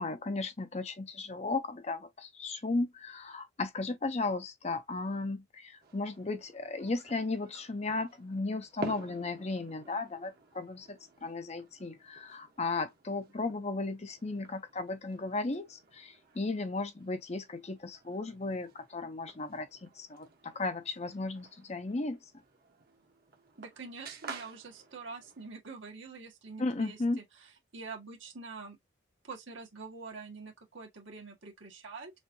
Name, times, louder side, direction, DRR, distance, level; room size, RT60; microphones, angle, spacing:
voice 1, 0.0-22.3 26.6-27.2, left 3 dB, 35° left, 0.6 m, -35 dB
sound 1, 5.8-25.5, right 3 dB, 50° right, 1.2 m, -51 dB
voice 2, 23.6-27.2 27.7-28.8 29.2-32.1, right 4 dB, 75° right, 1.8 m, -45 dB
6.2 x 2.7 x 2.8 m
head